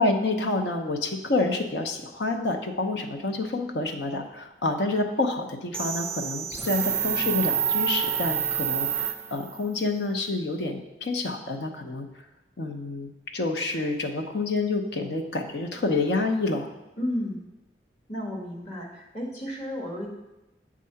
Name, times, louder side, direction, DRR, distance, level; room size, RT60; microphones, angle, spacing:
voice 1, 0.0-12.1 12.6-16.7, left 2 dB, 75° left, 4 dB, 0.7 m, -28 dB
sound 1, 5.7-9.6, right 8 dB, 15° right, 0.3 m, -27 dB
voice 2, 17.0-17.4 18.1-20.1, left 1 dB, 40° left, -2 dB, 1.4 m, -32 dB
7.5 x 3.7 x 5.7 m, 1.0 s
head